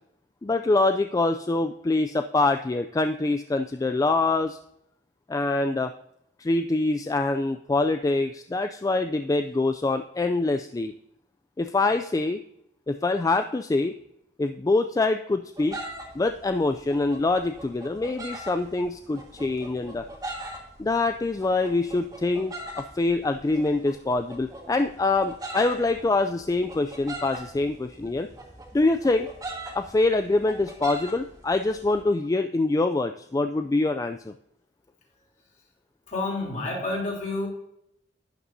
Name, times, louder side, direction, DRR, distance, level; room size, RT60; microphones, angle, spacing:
voice 1, 0.4-4.6 5.3-5.9 6.4-10.9 11.6-12.4 12.9-13.9 14.4-15.8 16.1-20.0 20.8-22.6 22.9-28.3 28.7-29.3 29.7-34.3, left 2 dB, 20° left, 7 dB, 0.3 m, -25 dB
sound 1, 15.6-32.0, right 1 dB, 20° right, 1.6 m, -41 dB
voice 2, 36.1-37.5, left 2 dB, 45° left, -1 dB, 3.3 m, -29 dB
11.5 x 9.5 x 2.7 m, 0.77 s
head